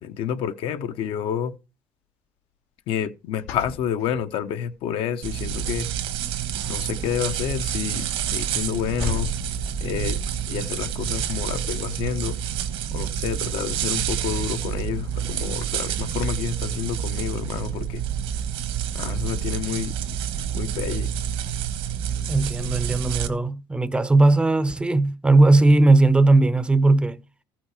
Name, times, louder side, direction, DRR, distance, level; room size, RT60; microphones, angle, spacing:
voice 1, 0.0-1.6 2.9-5.9 6.6-9.3 9.8-10.2 10.5-12.3 12.9-18.0 18.9-20.0 20.5-21.1, left 9 dB, 65° left, 0.9 m, -29 dB
sound 1, 3.4-4.9 5.4-5.7 6.0-16.3, left 4 dB, 85° left, 1.4 m, -40 dB
sound 2, 5.2-23.3, right 9 dB, 65° right, 1.3 m, -28 dB
voice 2, 22.3-27.2, right 2 dB, 10° right, 0.6 m, -18 dB
14.0 x 6.1 x 4.8 m
cardioid pair, 125°, 10 cm